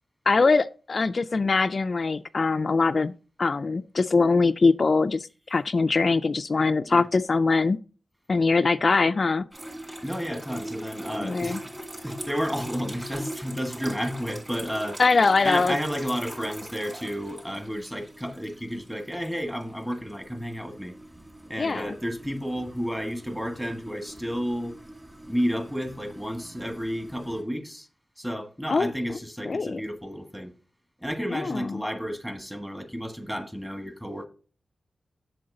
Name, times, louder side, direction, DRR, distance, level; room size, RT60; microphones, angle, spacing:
voice 1, 0.3-3.1 3.4-7.8 8.3-9.4 11.2-11.6 15.0-15.7 21.6-22.0 28.7-28.9 29.5-29.8 31.3-31.8, left 4 dB, 50° left, 0.3 m, -22 dB
sound 1, 9.5-27.4, right 1 dB, 25° right, 3.4 m, -42 dB
voice 2, 10.0-11.6 12.0-15.0 15.4-20.9 21.5-24.8 25.3-27.9 28.2-30.5 31.0-34.3, equal, 10° right, 1.5 m, -31 dB
7.7 x 7.0 x 3.8 m
wide cardioid pair, 80°, 0 cm